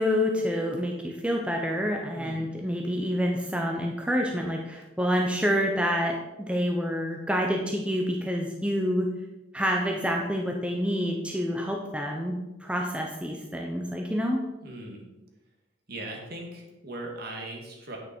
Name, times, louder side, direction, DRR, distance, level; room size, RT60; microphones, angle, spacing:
voice 1, 0.0-9.1 9.5-12.3 12.6-14.4, equal, 5° right, 1 dB, 0.8 m, -28 dB
voice 2, 2.1-2.5 14.6-15.0 15.9-18.0, right 1 dB, 50° right, 1 dB, 2.2 m, -39 dB
9.6 x 8.7 x 4.5 m, 1.1 s
head